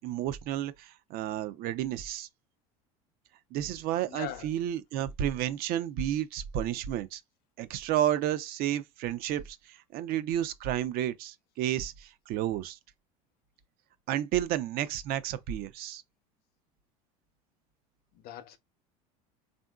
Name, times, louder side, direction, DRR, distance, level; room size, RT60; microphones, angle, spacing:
voice 1, 0.0-2.3 3.5-7.2 7.6-12.8 14.1-16.0, right 11 dB, 55° right, 0.6 m, -31 dB
voice 2, 4.1-4.5 18.1-18.6, left 11 dB, 60° left, 0.7 m, -40 dB
3.5 x 2.6 x 2.3 m
supercardioid pair, 95°, 18 cm